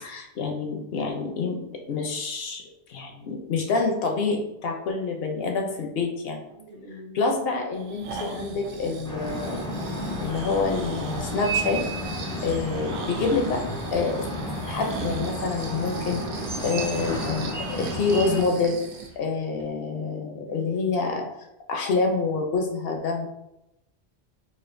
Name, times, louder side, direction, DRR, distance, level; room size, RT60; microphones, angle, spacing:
voice 1, 0.0-1.6 1.9-2.6 2.9-6.4 7.1-9.6 10.2-11.8 12.4-13.6 13.9-14.2 14.7-16.2 16.6-18.8 19.2-21.3 21.7-23.3, left 4 dB, 70° left, 2 dB, 0.7 m, -27 dB
voice 2, 6.5-7.2 12.9-13.3 20.2-20.8, equal, 50° right, -2 dB, 0.7 m, -43 dB
Breathing, 7.7-19.2 19.6-19.7, right 5 dB, 90° right, 0.9 m, -38 dB
sound 1, 9.0-18.4, equal, 5° left, 0.4 m, -32 dB
4.2 x 2.4 x 2.5 m, 0.88 s
omnidirectional pair, 1.1 m